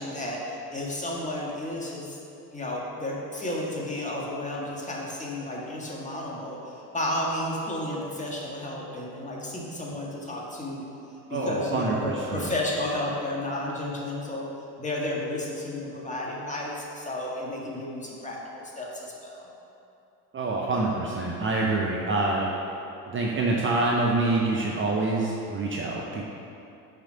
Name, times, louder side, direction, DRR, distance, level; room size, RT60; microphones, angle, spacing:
voice 1, 0.0-2.2 2.5-10.8 11.3-14.5 14.8-18.4 18.6-19.5, left 1 dB, 15° left, -3 dB, 1.7 m, -32 dB
voice 2, 11.3-12.5 20.3-22.5 23.1-26.2, right 2 dB, 25° right, -2 dB, 0.8 m, -26 dB
6.2 x 5.1 x 5.6 m, 2.8 s
hypercardioid pair, 70°, 47 cm